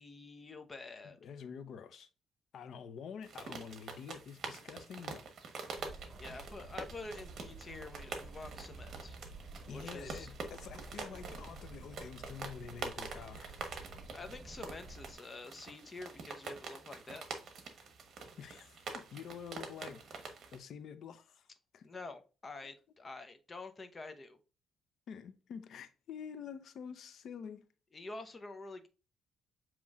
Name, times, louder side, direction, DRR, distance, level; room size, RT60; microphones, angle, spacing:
voice 1, 0.0-1.3 5.8-9.2 9.7-10.3 14.1-17.3 21.8-24.4 27.9-28.9, left 3 dB, 30° left, 0.8 m, -48 dB
voice 2, 1.0-2.1 2.5-5.2 6.2-6.5 9.7-13.5 18.4-21.5 21.7-21.9 25.1-27.7, left 7 dB, 70° left, 0.6 m, -48 dB
sound 1, 3.2-20.6, right 4 dB, 60° right, 1.1 m, -46 dB
sound 2, 5.8-15.2, right 2 dB, 45° right, 1.5 m, -51 dB
7.2 x 3.0 x 2.4 m
cardioid pair, 90°, 0 cm